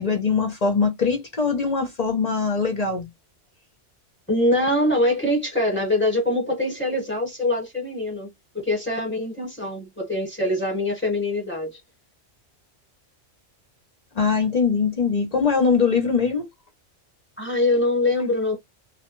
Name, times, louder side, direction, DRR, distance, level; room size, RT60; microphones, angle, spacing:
voice 1, 0.0-3.1 14.1-16.5, left 5 dB, 50° left, 0.5 m, -22 dB
voice 2, 4.3-8.3 8.5-11.8 17.4-18.6, left 1 dB, 10° left, 1.0 m, -23 dB
2.5 x 2.1 x 2.9 m
omnidirectional pair, 1.3 m